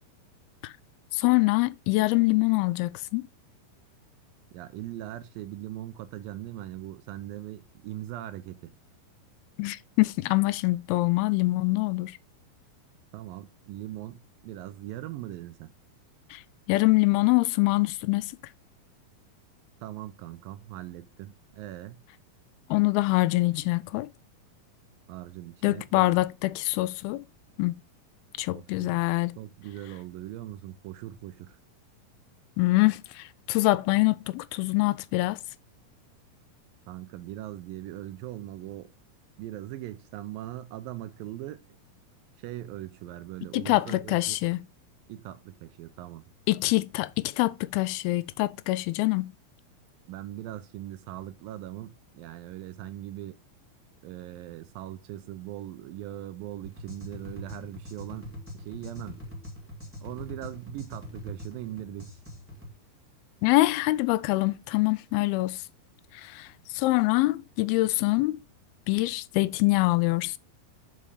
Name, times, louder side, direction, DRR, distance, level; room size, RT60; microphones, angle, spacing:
voice 1, 1.1-3.2 9.6-12.2 16.3-16.4 16.7-18.3 22.7-24.1 25.6-27.2 27.6-27.8 28.4-29.4 32.6-35.4 43.5-44.7 46.5-49.3 63.4-65.6 66.2-66.5 66.7-68.4 68.9-70.4, left 20 dB, 90° left, 2.5 m, -24 dB
voice 2, 4.5-8.7 13.1-15.7 19.8-22.0 25.1-26.2 28.5-28.9 29.4-31.6 36.9-38.9 39.4-41.6 42.4-44.4 45.1-46.3 50.1-53.4 54.0-59.2 60.0-62.2, right 14 dB, 80° right, 2.3 m, -40 dB
sound 1, 56.6-62.7, left 1 dB, 5° right, 1.5 m, -43 dB
5.5 x 5.5 x 4.8 m
omnidirectional pair, 4.3 m